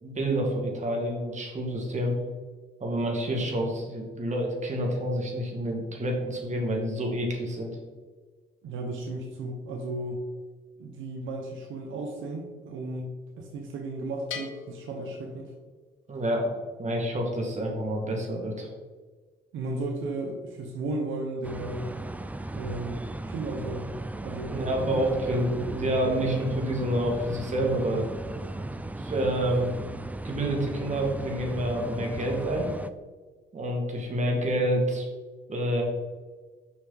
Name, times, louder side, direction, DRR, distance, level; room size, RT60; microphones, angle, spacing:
voice 1, 0.0-2.2 2.8-7.7 16.1-16.5 16.8-18.7 24.5-28.1 29.0-29.7 30.2-32.7 33.5-35.1 35.5-35.8, right 1 dB, 35° right, 0 dB, 2.1 m, -28 dB
voice 2, 8.6-10.2 10.8-15.5 19.5-22.0 22.5-23.0 23.3-25.2, right 2 dB, 80° right, 1 dB, 1.1 m, -35 dB
Bell, 14.3-16.0, left 7 dB, 75° left, 1.0 m, -42 dB
sound 1, 21.4-32.9, right 2 dB, 10° right, 0.4 m, -36 dB
6.4 x 5.8 x 4.0 m, 1.4 s
cardioid pair, 90°, 20 cm